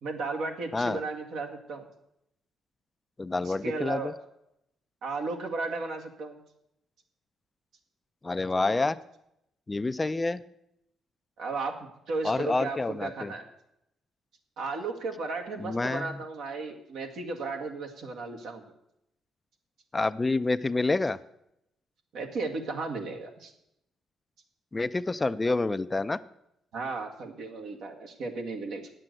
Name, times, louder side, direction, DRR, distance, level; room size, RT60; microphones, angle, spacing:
voice 1, 0.0-1.9 3.4-4.1 5.0-6.4 11.4-13.5 14.6-18.6 22.1-23.5 26.7-28.9, right 3 dB, 75° right, 2 dB, 1.9 m, -35 dB
voice 2, 3.2-4.1 8.2-9.0 9.7-10.4 12.2-13.3 15.6-16.2 19.9-21.2 24.7-26.2, left 3 dB, 20° left, 14 dB, 0.4 m, -28 dB
9.5 x 7.6 x 7.8 m, 0.81 s
cardioid pair, 90°, 0 cm